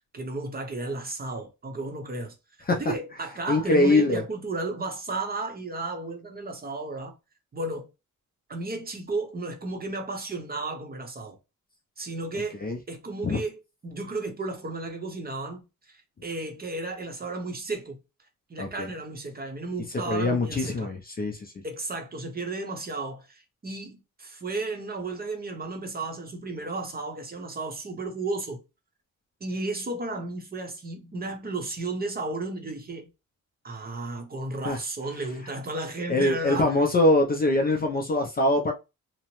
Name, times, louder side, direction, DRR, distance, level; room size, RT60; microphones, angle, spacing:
voice 1, 0.1-2.3 2.7-7.1 7.5-7.9 8.5-11.4 12.0-12.6 12.9-18.0 18.5-20.9 21.6-28.6 29.4-33.1 33.6-36.7, right 2 dB, 30° right, 0.7 m, -33 dB
voice 2, 3.5-4.2 12.6-12.8 13.2-13.4 18.6-18.9 20.1-21.5 34.6-34.8 36.1-38.7, left 2 dB, 30° left, 0.4 m, -23 dB
2.8 x 2.0 x 2.9 m
cardioid pair, 125°, 33 cm